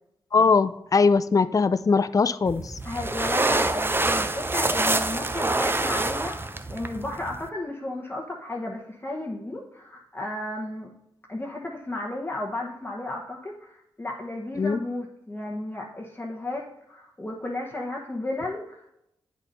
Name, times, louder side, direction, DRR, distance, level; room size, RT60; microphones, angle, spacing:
voice 1, 0.3-2.8 14.6-14.8, left 4 dB, 35° left, 13 dB, 0.4 m, -21 dB
sound 1, 2.5-7.5, right 2 dB, 20° right, 0.6 m, -26 dB
voice 2, 2.8-10.9 11.3-18.9, left 2 dB, 20° left, -2 dB, 1.1 m, -34 dB
8.2 x 4.1 x 5.3 m, 0.81 s
cardioid pair, 45°, 10 cm